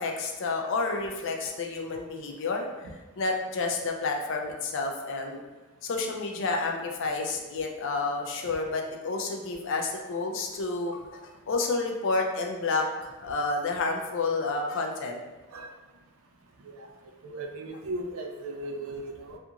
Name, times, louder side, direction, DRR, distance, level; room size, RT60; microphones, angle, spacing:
voice 1, 0.0-2.7 3.2-5.4 5.8-11.0 11.5-15.2, left 3 dB, 55° left, 2 dB, 0.4 m, -30 dB
voice 2, 17.2-19.4, right 1 dB, 70° right, 3 dB, 0.4 m, -37 dB
2.8 x 2.5 x 2.4 m, 1.2 s
head